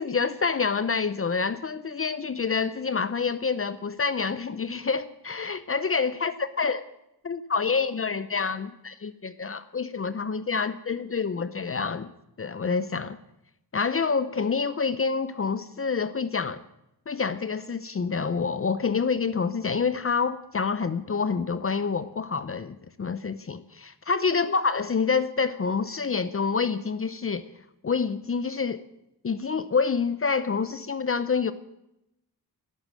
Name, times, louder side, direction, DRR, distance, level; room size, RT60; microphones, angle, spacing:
voice 1, 0.0-6.8 7.2-12.1 12.4-13.2 13.7-16.6 17.1-27.4 27.8-28.8 29.2-31.5, left 5 dB, 35° left, 13 dB, 0.7 m, -27 dB
19.0 x 12.0 x 6.3 m, 0.86 s
wide cardioid pair, 130°, 38 cm